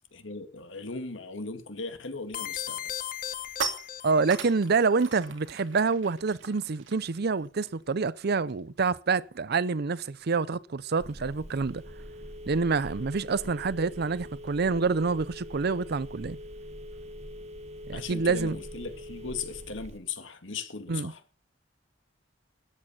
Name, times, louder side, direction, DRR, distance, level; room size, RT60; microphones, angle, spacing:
voice 1, 0.1-2.8 17.9-21.2, left 4 dB, 75° left, 2.2 m, -38 dB
sound 1, 2.2-2.5 2.8-8.8 9.0-9.3 9.6-14.6, right 5 dB, 75° right, 2.4 m, -42 dB
sound 2, 2.3-4.7, left 10 dB, 50° left, 0.9 m, -37 dB
voice 2, 4.0-11.8 12.5-16.4 17.9-18.6 20.9-21.1, right 4 dB, 55° right, 0.6 m, -27 dB
Telephone, 11.0-20.0, equal, 35° right, 1.4 m, -43 dB
13.5 x 8.9 x 7.2 m
head